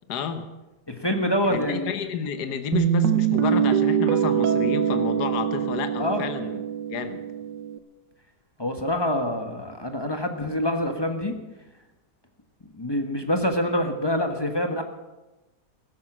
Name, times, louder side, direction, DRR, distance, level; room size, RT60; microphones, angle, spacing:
voice 1, 0.1-0.5 1.5-6.6 6.9-7.2, left 7 dB, 70° left, 9 dB, 1.6 m, -30 dB
voice 2, 0.9-2.0 6.0-6.3 8.6-11.4 12.7-14.8, left 1 dB, 15° left, 5 dB, 1.2 m, -26 dB
Guitar, 2.7-7.8, right 9 dB, 85° right, 1.5 m, -23 dB
15.5 x 13.5 x 6.2 m, 1.1 s
omnidirectional pair, 1.9 m